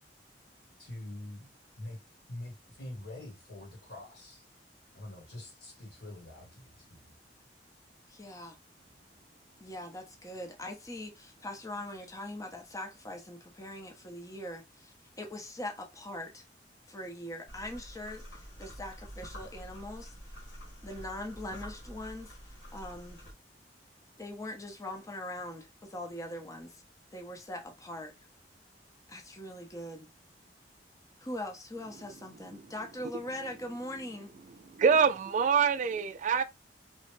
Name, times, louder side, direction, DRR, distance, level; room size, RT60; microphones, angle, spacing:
voice 1, 0.8-1.5 1.8-2.0 2.3-4.4 4.9-7.2, left 1 dB, 70° left, 1.1 m, -45 dB
voice 2, 8.1-8.6 9.6-16.4 16.9-20.1 20.8-23.2 24.2-26.8 27.1-28.1 29.1-30.1 31.2-34.3, left 1 dB, 20° left, 0.7 m, -41 dB
sound 1, 17.5-23.3, equal, 85° left, 1.3 m, -47 dB
voice 3, 34.7-36.4, right 6 dB, 45° right, 0.3 m, -25 dB
2.9 x 2.1 x 3.1 m
head